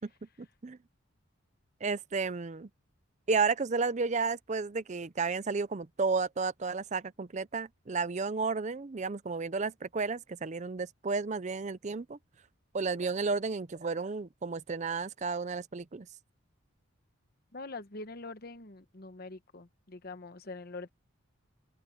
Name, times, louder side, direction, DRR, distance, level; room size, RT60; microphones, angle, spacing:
voice 1, 0.4-0.8 1.8-2.7 3.3-12.2 12.7-16.1, right 4 dB, 35° right, 0.5 m, -32 dB
voice 2, 17.5-20.9, left 3 dB, 45° left, 1.1 m, -44 dB
open air
head